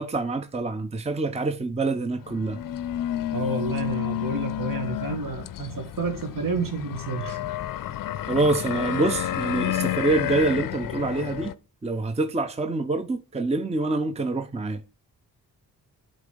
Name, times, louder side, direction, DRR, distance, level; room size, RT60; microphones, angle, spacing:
voice 1, 0.0-2.6 8.3-11.6 11.8-14.8, right 3 dB, 15° right, 0.7 m, -26 dB
sound 1, 2.2-11.5, left 12 dB, 55° left, 0.6 m, -30 dB
voice 2, 3.3-7.4, right 4 dB, 50° right, 1.7 m, -30 dB
8.0 x 3.2 x 5.2 m
supercardioid pair, 40°, 41 cm